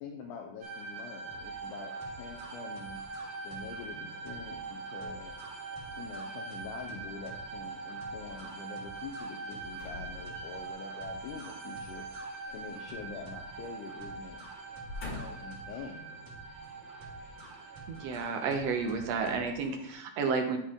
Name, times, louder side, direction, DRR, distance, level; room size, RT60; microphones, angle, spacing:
voice 1, 0.0-3.0 3.4-5.3 6.0-12.1 12.5-14.4 15.0-16.2, left 5 dB, 80° left, 1 dB, 2.2 m, -45 dB
sound 1, 0.6-19.4, right 3 dB, 85° right, 2.9 m, -43 dB
sound 2, 1.3-19.9, right 3 dB, 40° right, 2.3 m, -52 dB
Closetdoor boom stereo verynear, 9.8-10.9 12.4-13.6 13.9-14.1 14.7-15.6 16.3-16.4, left 2 dB, 35° left, 2.0 m, -44 dB
voice 2, 17.9-20.6, right 5 dB, 70° right, 4 dB, 1.6 m, -31 dB
11.5 x 4.2 x 3.7 m, 0.76 s
omnidirectional pair, 3.7 m